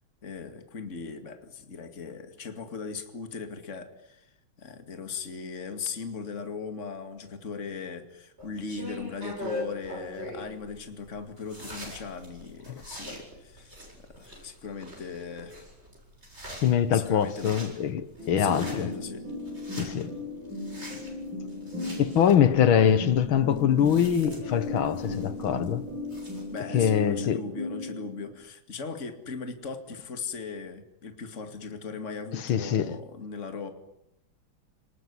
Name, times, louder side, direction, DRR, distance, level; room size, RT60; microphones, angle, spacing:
voice 1, 0.2-4.3 4.6-15.6 16.9-17.6 18.4-19.3 26.5-33.7, left 5 dB, 35° left, 2.5 m, -38 dB
sound 1, 8.4-26.6, left 1 dB, 30° right, 7.5 m, -43 dB
voice 2, 16.6-18.9 19.7-20.1 22.0-25.8 26.7-27.4 32.3-33.0, left 8 dB, 70° left, 2.1 m, -24 dB
sound 2, 18.2-28.3, left 2 dB, 60° right, 5.8 m, -36 dB
29.0 x 20.0 x 9.7 m
omnidirectional pair, 2.4 m